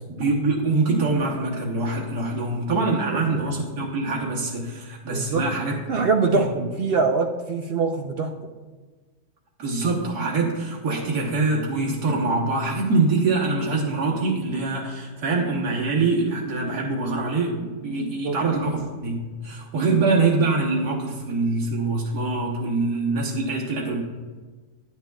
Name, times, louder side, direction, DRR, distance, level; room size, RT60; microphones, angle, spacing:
voice 1, 0.1-5.8 6.3-6.5 9.6-24.0, right 3 dB, 90° right, -3 dB, 1.6 m, -24 dB
voice 2, 3.1-3.5 5.1-5.5 5.9-8.5 18.2-18.4, right 4 dB, 75° right, 4 dB, 0.5 m, -24 dB
10.0 x 9.6 x 2.3 m, 1.4 s
omnidirectional pair, 1.6 m